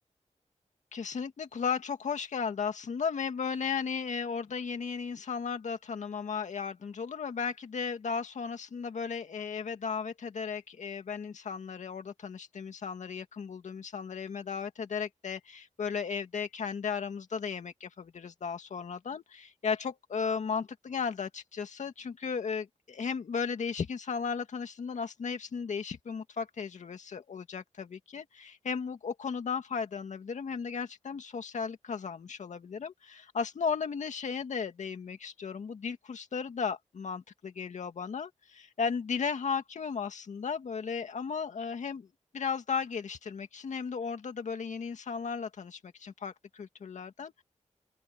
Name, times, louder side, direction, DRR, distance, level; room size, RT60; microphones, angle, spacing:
voice 1, 0.9-42.1 42.3-47.4, left 6 dB, 75° left, 2.2 m, -35 dB
open air
wide cardioid pair, 120°, 13 cm